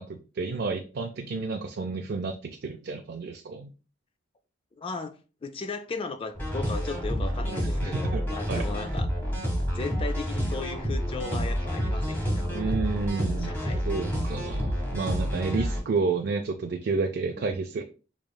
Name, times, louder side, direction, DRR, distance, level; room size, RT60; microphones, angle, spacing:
voice 1, 0.0-3.7 7.8-8.2 8.5-8.6 12.5-17.8, right 4 dB, 60° right, 0.4 m, -30 dB
voice 2, 4.8-5.1 5.4-9.1 9.7-12.7 13.2-13.9 17.3-17.5, left 4 dB, 30° left, 0.3 m, -36 dB
sound 1, 6.3-15.8, equal, 10° left, 1.4 m, -29 dB
4.8 x 3.0 x 2.2 m
head